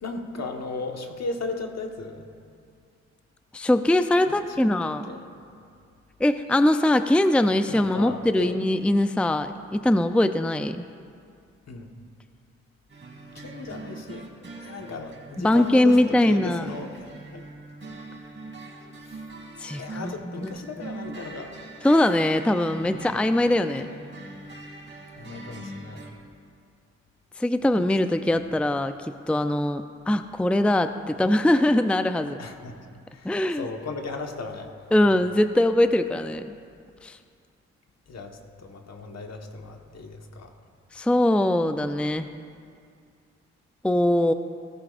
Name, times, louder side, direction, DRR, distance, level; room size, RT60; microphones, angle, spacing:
voice 1, 0.0-2.2 4.3-5.3 7.7-8.5 11.7-11.9 13.3-14.3 14.6-17.5 19.0-19.3 19.8-21.5 22.8-23.1 25.1-26.0 32.4-32.8 33.1-35.1 38.1-40.5, left 3 dB, 60° left, 3 dB, 1.5 m, -36 dB
voice 2, 3.5-5.1 6.2-10.8 15.4-16.7 19.6-20.1 20.4-20.5 21.8-23.9 27.4-32.4 33.2-33.7 34.9-36.5 37.0-37.2 40.9-42.3 43.8-44.3, left 1 dB, 5° left, 9 dB, 0.5 m, -22 dB
sound 1, 12.9-26.1, right 2 dB, 40° right, 2.8 m, -42 dB
16.5 x 14.0 x 2.6 m, 2.3 s
supercardioid pair, 45°, 29 cm